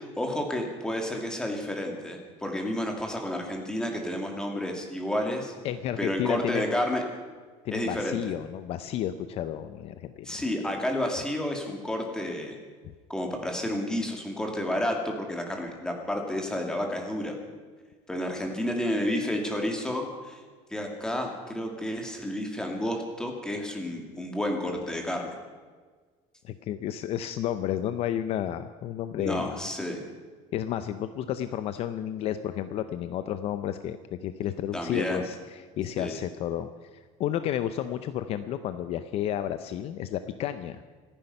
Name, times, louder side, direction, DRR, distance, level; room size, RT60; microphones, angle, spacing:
voice 1, 0.0-5.5 6.0-7.0 7.7-8.2 10.2-12.6 13.1-17.4 18.1-20.4 20.7-25.4 29.2-30.0 34.7-35.2 36.0-36.1, left 1 dB, 5° left, 2 dB, 2.3 m, -31 dB
voice 2, 5.6-6.7 7.6-10.4 12.8-12.9 26.4-29.6 30.5-40.8, left 11 dB, 45° left, 11 dB, 0.6 m, -32 dB
25.5 x 10.0 x 5.4 m, 1.5 s
cardioid pair, 165°, 14 cm